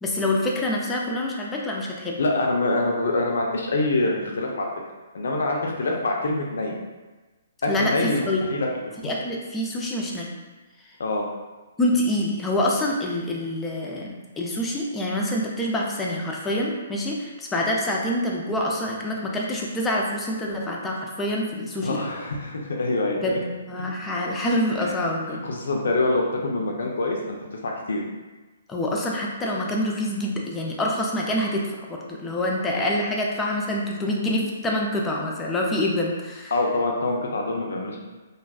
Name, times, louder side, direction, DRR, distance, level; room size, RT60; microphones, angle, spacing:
voice 1, 0.0-2.2 7.7-8.4 9.0-10.3 11.8-22.0 23.1-25.4 28.7-36.5, left 1 dB, 15° left, -2 dB, 0.4 m, -26 dB
voice 2, 2.2-4.7 5.1-6.8 7.6-8.9 11.0-11.3 21.8-23.4 24.8-25.0 25.3-27.4 27.6-28.0 36.5-38.0, left 2 dB, 70° left, 0 dB, 0.5 m, -25 dB
2.5 x 2.2 x 2.3 m, 1.2 s
hypercardioid pair, 135°, 0 cm